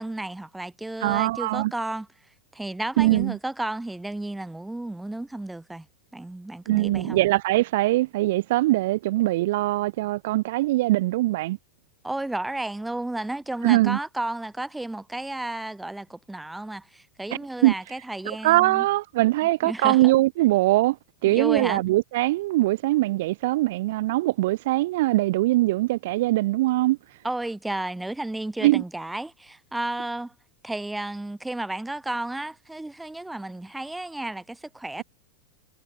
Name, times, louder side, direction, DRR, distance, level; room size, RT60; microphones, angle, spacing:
voice 1, 0.0-2.1 2.5-5.9 6.1-7.2 12.0-18.9 19.4-20.2 21.3-21.8 27.2-30.3 30.6-35.0, right 2 dB, 5° right, 0.8 m, -32 dB
voice 2, 1.0-1.7 3.0-3.4 6.7-11.6 13.6-14.0 17.6-17.7 18.4-21.0 21.2-27.0 28.6-28.8, right 18 dB, 50° right, 0.7 m, -22 dB
figure-of-eight pair, 90°, 0 cm